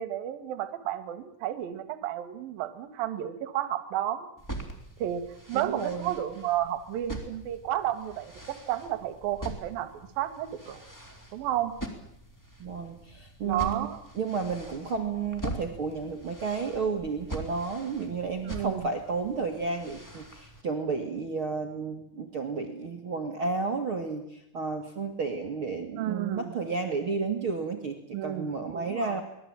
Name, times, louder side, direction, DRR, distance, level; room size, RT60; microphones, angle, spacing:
voice 1, 0.0-4.3 5.0-9.9 10.2-10.8 11.3-11.7 13.4-14.0 18.4-18.9 26.0-26.5 28.1-29.2, right 12 dB, 65° right, 10 dB, 3.0 m, -32 dB
sound 1, 4.4-20.6, right 1 dB, 5° left, 2.3 m, -43 dB
voice 2, 5.5-6.1 12.6-13.9 14.1-29.2, right 4 dB, 45° right, 4 dB, 1.7 m, -32 dB
24.5 x 20.5 x 8.9 m, 0.79 s
omnidirectional pair, 5.2 m